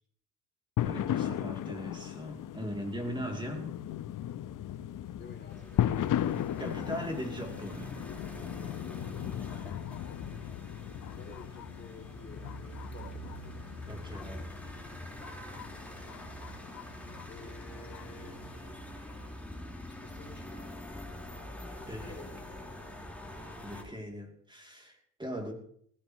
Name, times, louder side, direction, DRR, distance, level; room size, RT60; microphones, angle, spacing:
sound 1, 0.8-18.8, left 11 dB, 55° left, 1.0 m, -37 dB
voice 1, 0.8-3.7 6.6-8.2 13.9-14.5 16.0-16.1 21.9-22.4 23.6-25.5, equal, 10° right, 1 dB, 3.0 m, -40 dB
voice 2, 5.2-5.9 10.8-13.5 14.0-14.1 17.3-18.4 19.9-21.0 21.8-22.9, left 3 dB, 25° left, 3 dB, 3.5 m, -52 dB
sound 2, 5.5-23.8, equal, 5° left, 4.4 m, -45 dB
19.5 x 13.5 x 3.2 m, 0.65 s
supercardioid pair, 70°, 39 cm